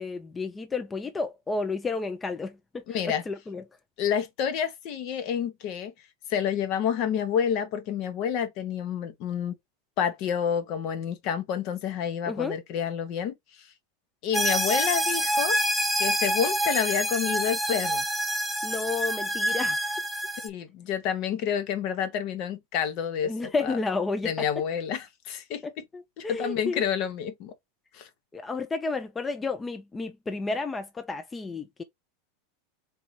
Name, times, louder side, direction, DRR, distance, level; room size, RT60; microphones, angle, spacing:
voice 1, 0.0-3.6 12.3-12.6 18.6-19.9 23.2-24.3 25.6-26.8 28.3-31.8, left 3 dB, 20° left, 0.5 m, -31 dB
voice 2, 2.9-3.2 4.0-5.9 6.3-9.6 10.0-13.3 14.2-15.6 16.0-18.1 20.4-23.8 24.2-25.8 26.2-27.5 27.9-28.1, left 8 dB, 55° left, 0.9 m, -29 dB
sound 1, 14.3-20.5, right 1 dB, ahead, 0.9 m, -27 dB
3.6 x 2.8 x 4.1 m
hypercardioid pair, 100°, 0 cm